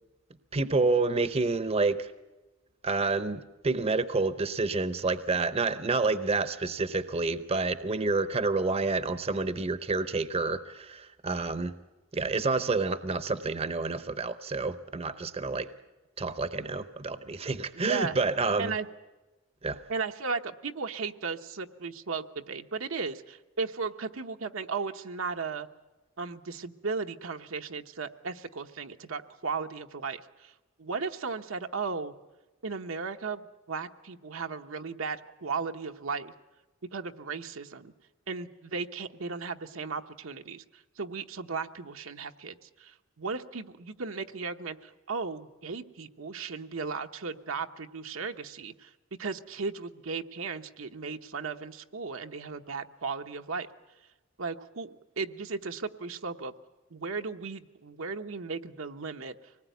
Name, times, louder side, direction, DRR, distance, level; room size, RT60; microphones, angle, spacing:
voice 1, 0.5-2.1 2.8-11.7 12.1-15.7 16.2-18.7 19.6-19.8, right 3 dB, 30° right, 0.7 m, -29 dB
voice 2, 17.7-18.2 18.6-18.9 19.9-25.7 26.2-30.5 30.8-32.1 32.6-36.3 36.9-37.9 38.3-48.9 49.2-53.7 54.4-56.5 56.9-59.3, right 4 dB, 85° right, 1.0 m, -36 dB
24.5 x 19.5 x 9.3 m
head